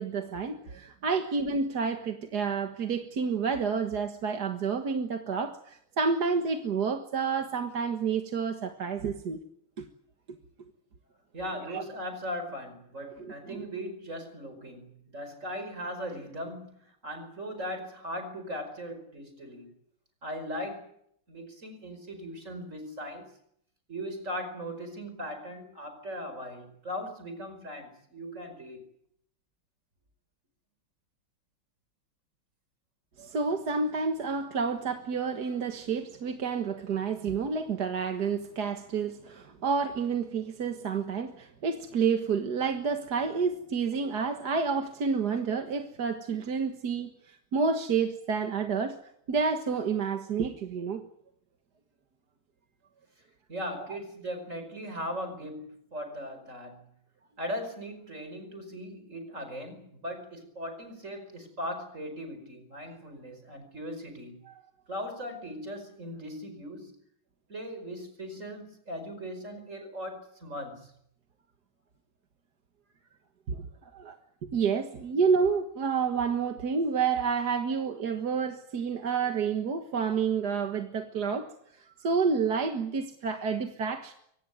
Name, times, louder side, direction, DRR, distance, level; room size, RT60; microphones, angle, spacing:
voice 1, 0.0-9.4 9.8-9.9 11.7-11.8 13.2-13.7 33.2-49.0 49.3-51.0 73.5-73.6 73.9-74.2 74.5-81.5 82.0-84.1, right 5 dB, 55° right, 1.9 m, -29 dB
voice 2, 11.3-19.7 20.2-20.9 21.3-23.3 23.9-28.9 53.5-56.9 57.4-64.4 64.9-67.0 67.5-70.9, equal, 35° right, 5.3 m, -39 dB
24.5 x 18.0 x 9.4 m
omnidirectional pair, 2.3 m